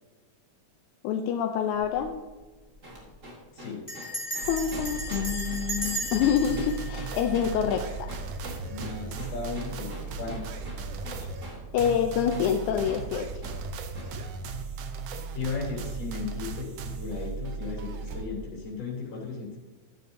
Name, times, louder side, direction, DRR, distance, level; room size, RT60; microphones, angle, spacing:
voice 1, 1.0-2.2 4.5-8.1 11.2-11.3 11.7-13.3, left 8 dB, 85° left, 5 dB, 2.0 m, -27 dB
Bell, 1.7-2.1 2.4-2.5 2.7-3.1 3.9-8.0, equal, 15° left, 2.2 m, -36 dB
sound 1, 2.8-12.1 12.3-12.5 12.9-13.1 13.4-13.6 14.0-14.2, equal, 30° right, 2.1 m, -43 dB
sound 2, 4.4-18.3, right 4 dB, 70° right, 1.6 m, -37 dB
voice 2, 8.7-10.5 15.3-19.6, left 4 dB, 55° left, -4 dB, 4.2 m, -36 dB
13.0 x 9.3 x 2.7 m, 1.3 s
omnidirectional pair, 3.4 m